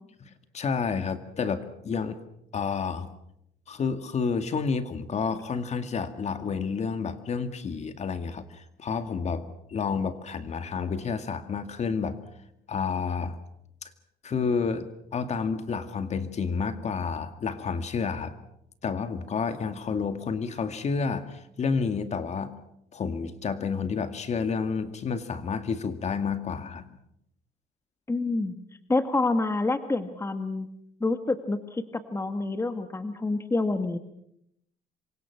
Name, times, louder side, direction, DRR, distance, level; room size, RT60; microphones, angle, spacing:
voice 1, 0.3-2.2 2.5-3.1 3.7-12.2 12.7-13.4 13.8-13.9 14.2-14.9 15.1-18.4 18.8-22.6 22.9-27.0, left 5 dB, 40° left, 9 dB, 2.2 m, -30 dB
voice 2, 28.1-28.6 28.9-30.7 31.0-34.0, left 2 dB, 15° left, 8 dB, 1.6 m, -27 dB
27.5 x 24.5 x 6.0 m, 0.76 s
cardioid pair, 110°, 17 cm